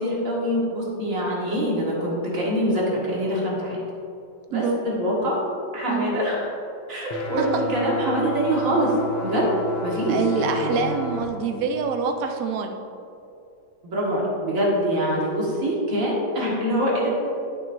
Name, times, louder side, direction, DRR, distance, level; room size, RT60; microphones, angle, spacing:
voice 1, 0.0-3.8 4.5-5.4 5.7-6.5 6.9-9.5 9.8-10.9 13.8-17.1, equal, 45° right, -5 dB, 1.9 m, -24 dB
voice 2, 4.5-4.8 5.9-6.1 7.4-7.5 10.1-12.8, right 5 dB, 65° right, 5 dB, 0.9 m, -26 dB
sound 1, 7.1-11.2, left 2 dB, 85° left, 1.6 m, -32 dB
11.0 x 6.1 x 2.6 m, 2.7 s
omnidirectional pair, 2.2 m